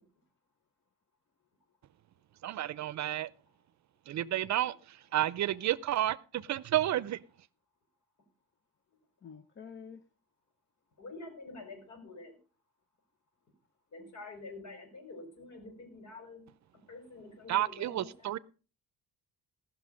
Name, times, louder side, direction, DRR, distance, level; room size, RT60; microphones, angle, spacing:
voice 1, 2.4-3.3 4.1-7.2 17.5-18.4, right 13 dB, 55° right, 0.6 m, -31 dB
voice 2, 9.2-10.0, left 6 dB, 35° left, 0.7 m, -47 dB
voice 3, 11.0-12.3 13.9-16.4 16.9-18.3, left 3 dB, 60° left, 5.4 m, -47 dB
18.5 x 6.2 x 5.1 m
cardioid pair, 110°, 33 cm